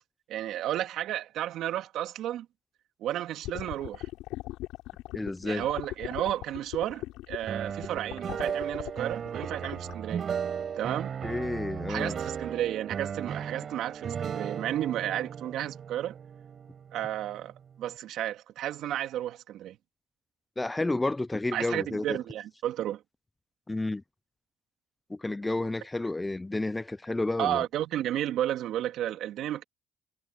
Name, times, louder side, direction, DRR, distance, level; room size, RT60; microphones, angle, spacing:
voice 1, 0.3-2.5 3.0-4.1 5.4-10.2 10.8-11.1 11.9-16.2 16.9-19.8 21.5-23.0 27.4-29.6, right 12 dB, 70° right, 2.9 m, -32 dB
sound 1, 3.4-9.9, left 17 dB, 80° left, 6.4 m, -39 dB
voice 2, 5.1-5.6 11.2-12.1 20.6-22.2 23.7-24.0 25.1-27.6, left 2 dB, 15° left, 0.5 m, -31 dB
sound 2, 7.5-17.4, right 7 dB, 50° right, 5.3 m, -36 dB
supercardioid pair, 85°, 0 cm